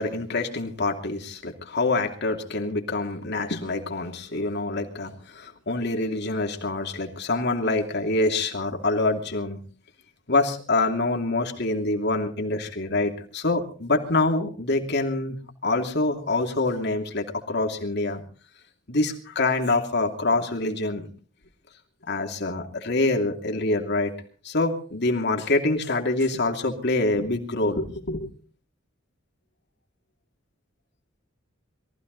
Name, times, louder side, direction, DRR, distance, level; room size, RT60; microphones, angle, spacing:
voice 1, 0.0-9.6 10.3-18.2 18.9-21.1 22.1-24.1 24.4-28.3, left 2 dB, 60° left, 3 dB, 2.8 m, -26 dB
23.0 x 15.0 x 4.0 m, 0.40 s
head